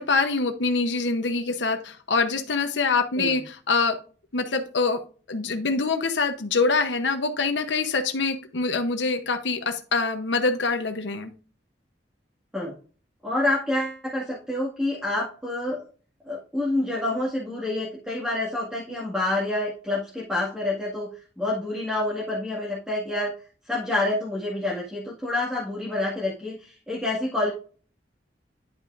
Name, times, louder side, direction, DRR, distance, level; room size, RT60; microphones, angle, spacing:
voice 1, 0.0-4.0 4.3-5.0 5.3-11.3, left 4 dB, 85° left, 6 dB, 0.9 m, -25 dB
voice 2, 13.2-15.8 16.3-21.1 21.4-23.3 23.7-27.5, left 2 dB, 5° right, -4 dB, 1.9 m, -27 dB
10.5 x 5.8 x 2.5 m, 0.39 s
head